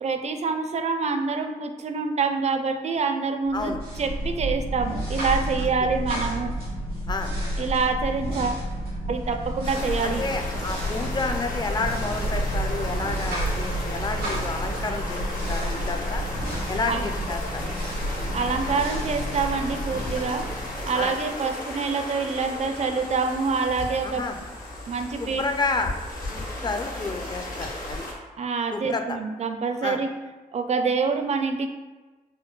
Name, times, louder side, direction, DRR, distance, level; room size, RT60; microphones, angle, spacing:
voice 1, 0.0-6.5 7.6-8.7 9.1-10.2 16.9-17.1 18.3-20.5 20.9-24.3 24.9-25.4 28.4-30.1 30.5-31.7, right 4 dB, 45° right, 6 dB, 0.4 m, -26 dB
sound 1, 3.5-21.3, equal, 85° right, 1.3 m, -30 dB
sound 2, 9.6-28.1, left 1 dB, 65° left, 0.9 m, -35 dB
voice 2, 10.0-16.2 16.7-17.6 20.9-21.1 24.0-24.5 25.2-25.9 26.3-28.0 28.7-29.2 29.8-30.0, left 3 dB, 25° left, 6 dB, 0.4 m, -30 dB
4.3 x 2.1 x 2.3 m, 1.2 s
supercardioid pair, 45°, 16 cm